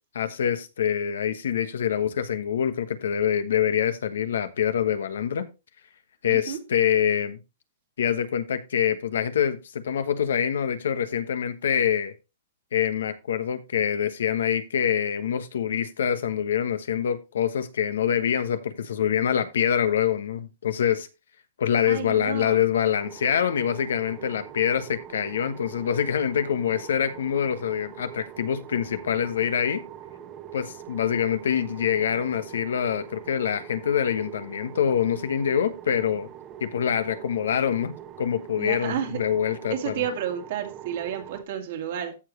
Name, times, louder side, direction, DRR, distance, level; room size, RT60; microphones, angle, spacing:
voice 1, 0.1-5.5 6.2-7.4 8.0-12.1 12.7-21.1 21.6-29.8 30.5-36.3 36.6-40.0, left 8 dB, 80° left, 1.2 m, -25 dB
voice 2, 6.2-6.6 21.9-22.7 38.6-39.2 39.7-42.2, right 9 dB, 60° right, 2.3 m, -31 dB
sound 1, 23.0-41.4, right 9 dB, 30° right, 1.1 m, -43 dB
14.5 x 5.0 x 3.1 m
hypercardioid pair, 135°, 0 cm